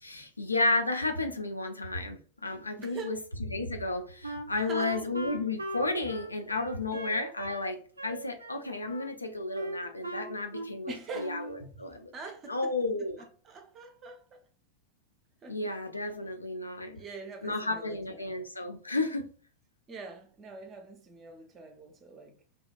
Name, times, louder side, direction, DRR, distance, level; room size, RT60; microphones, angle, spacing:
voice 1, 0.0-3.2 3.5-12.1 12.5-13.2 15.5-17.0 17.4-19.3, left 2 dB, 80° left, 0.3 m, -32 dB
voice 2, 2.8-3.2 4.7-5.1 6.9-7.0 10.9-11.8 12.1-12.8 13.2-14.4 15.4-15.7 17.0-18.4 19.9-22.4, right 3 dB, 30° right, 0.5 m, -44 dB
Wind instrument woodwind instrument, 4.2-7.7 8.0-9.1 9.5-10.8 11.1-11.6, right 2 dB, 80° right, 0.4 m, -39 dB
2.6 x 2.1 x 2.4 m
figure-of-eight pair, 90°, 0 cm